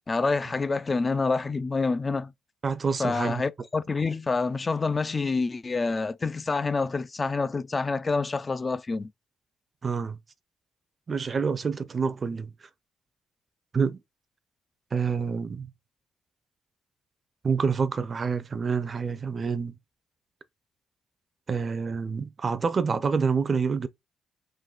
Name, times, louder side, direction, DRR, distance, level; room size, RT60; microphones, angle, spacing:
voice 1, 0.1-2.3 3.0-9.1, left 4 dB, 30° left, 0.3 m, -27 dB
voice 2, 2.6-3.4 9.8-10.2 11.1-12.5 13.7-14.0 14.9-15.7 17.4-19.7 21.5-23.9, right 5 dB, 40° right, 0.5 m, -27 dB
3.8 x 2.6 x 3.8 m
cardioid pair, 90°, 0 cm